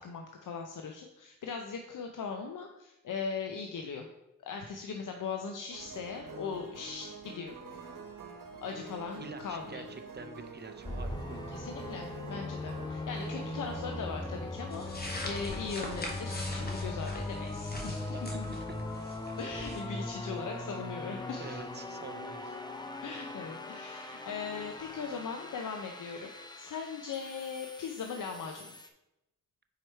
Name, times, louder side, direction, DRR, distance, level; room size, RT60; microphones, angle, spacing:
voice 1, 0.0-4.1 4.4-7.6 8.6-9.8 11.5-18.4 19.4-21.6 23.0-26.3 26.6-28.7, left 5 dB, 75° left, 3 dB, 0.6 m, -39 dB
sound 1, 5.7-14.2, right 3 dB, 80° right, 1.0 m, -47 dB
voice 2, 9.2-11.4 17.8-18.4 21.4-22.6, right 4 dB, 30° right, 8 dB, 0.6 m, -47 dB
sound 2, 10.8-28.9, left 2 dB, 15° left, 0.5 m, -40 dB
sound 3, 14.7-19.8, left 1 dB, 30° left, 1.2 m, -42 dB
4.7 x 4.6 x 4.4 m, 0.91 s
cardioid pair, 70°, 32 cm